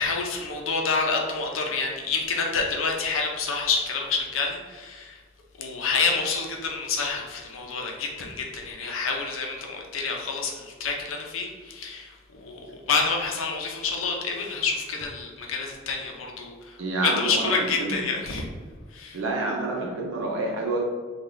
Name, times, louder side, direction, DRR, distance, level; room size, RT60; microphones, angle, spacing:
voice 1, 0.0-5.2 5.6-18.5 18.9-19.2, left 4 dB, 75° left, 1 dB, 0.6 m, -28 dB
voice 2, 16.8-17.5 17.8-18.0 19.1-20.8, right 2 dB, 70° right, -1 dB, 0.6 m, -28 dB
3.7 x 2.4 x 3.2 m, 1.5 s
head